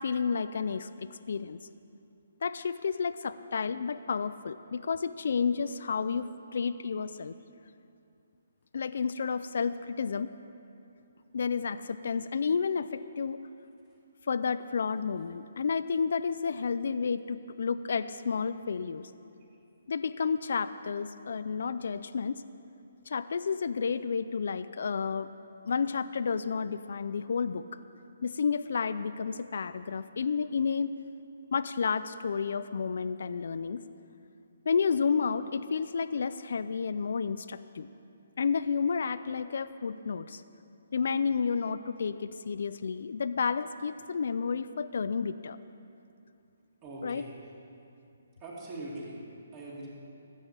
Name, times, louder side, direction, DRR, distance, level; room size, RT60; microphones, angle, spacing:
voice 1, 0.0-1.6 2.4-7.4 8.7-10.3 11.3-13.4 14.3-19.1 19.9-22.4 23.1-25.3 25.7-27.7 28.2-30.9 31.5-33.8 34.7-37.9 38.4-40.4 40.9-45.6 47.0-47.2, left 5 dB, 60° left, 14 dB, 0.4 m, -31 dB
voice 2, 46.8-47.3 48.4-49.2 49.5-49.9, right 1 dB, 20° right, -5 dB, 2.4 m, -41 dB
14.5 x 8.0 x 7.1 m, 2.6 s
hypercardioid pair, 170°, 0 cm